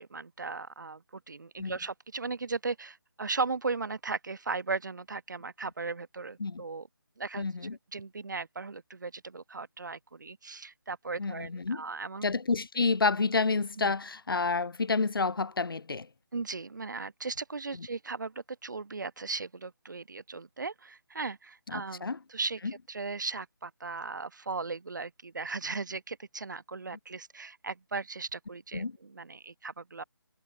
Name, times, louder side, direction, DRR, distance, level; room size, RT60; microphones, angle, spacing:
voice 1, 0.0-6.9 7.2-12.3 13.8-13.9 16.3-30.0, right 4 dB, 50° right, 0.9 m, -37 dB
voice 2, 7.4-7.8 11.2-11.8 12.2-16.1 17.8-17.9 21.7-22.2 22.6-22.7 28.7-29.0, left 4 dB, 65° left, 0.8 m, -29 dB
figure-of-eight pair, 175°, 13 cm